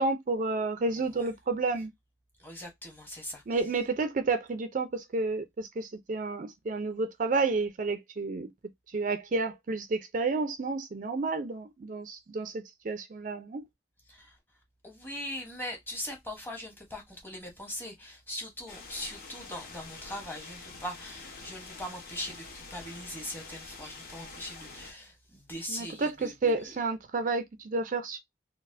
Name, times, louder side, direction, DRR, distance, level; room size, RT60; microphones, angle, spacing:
voice 1, 0.0-1.9 3.5-8.5 8.9-13.6 25.7-28.2, right 3 dB, 45° right, 0.4 m, -30 dB
voice 2, 2.4-3.4 14.1-14.4 14.8-26.8, left 1 dB, 10° left, 0.9 m, -41 dB
sound 1, 18.7-24.9, left 3 dB, 50° left, 1.1 m, -46 dB
4.0 x 2.0 x 2.5 m
head